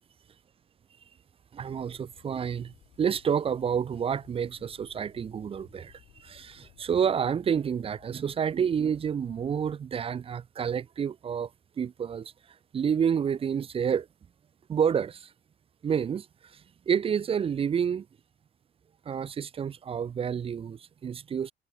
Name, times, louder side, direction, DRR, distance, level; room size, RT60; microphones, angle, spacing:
voice 1, 1.5-5.9 6.2-11.5 11.8-12.3 12.7-14.1 14.7-15.3 15.8-16.3 16.5-16.6 16.9-18.1 19.1-21.5, right 7 dB, 30° right, 0.5 m, -29 dB
sound 1, 1.6-9.7, left 17 dB, 85° left, 2.4 m, -58 dB
cardioid pair, 130°, 19 cm